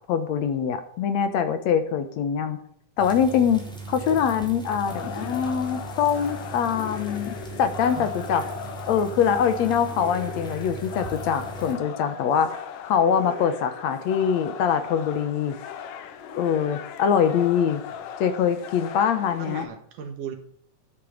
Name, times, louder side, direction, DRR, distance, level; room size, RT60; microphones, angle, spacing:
voice 1, 0.1-2.6 3.0-3.6 3.9-8.4 8.9-12.6 12.8-15.6 16.4-17.8 18.2-19.7, left 7 dB, 65° left, 9 dB, 2.1 m, -23 dB
sound 1, 3.0-11.7, right 4 dB, ahead, 3.3 m, -38 dB
voice 2, 4.7-5.3 19.4-20.4, right 7 dB, 80° right, 6 dB, 3.2 m, -38 dB
sound 2, 4.9-19.7, left 8 dB, 85° left, 2.6 m, -38 dB
12.0 x 9.3 x 5.0 m, 0.65 s
omnidirectional pair, 3.6 m